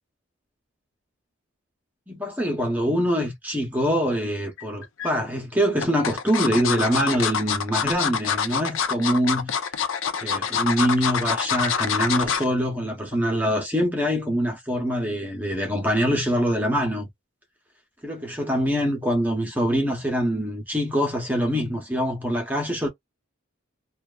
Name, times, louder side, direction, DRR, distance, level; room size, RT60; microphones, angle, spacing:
voice 1, 2.1-9.6 10.2-17.1 18.0-22.9, equal, 10° right, 0.7 m, -24 dB
sound 1, 4.6-5.1 5.8-12.5 12.9-13.1 13.4-13.5, left 6 dB, 75° left, 0.5 m, -26 dB
2.8 x 2.2 x 2.2 m
head